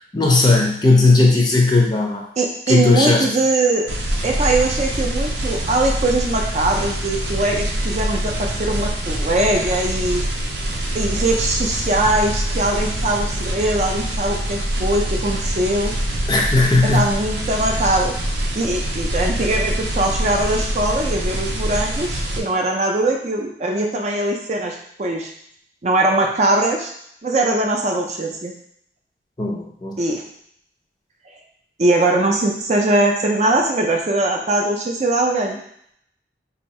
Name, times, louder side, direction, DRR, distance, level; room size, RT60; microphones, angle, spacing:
voice 1, 0.1-2.3 2.7-3.3 16.3-17.1 29.4-30.0, left 3 dB, 25° left, 0 dB, 0.5 m, -16 dB
voice 2, 2.4-3.9 4.2-10.2 10.9-15.9 16.8-18.1 18.5-25.3 25.8-26.9 27.2-28.5 30.0-30.2 31.8-35.6, right 2 dB, 40° right, 1 dB, 0.5 m, -21 dB
sound 1, 3.9-22.4, right 1 dB, 80° right, 0.7 m, -24 dB
2.7 x 2.6 x 4.2 m, 0.68 s
head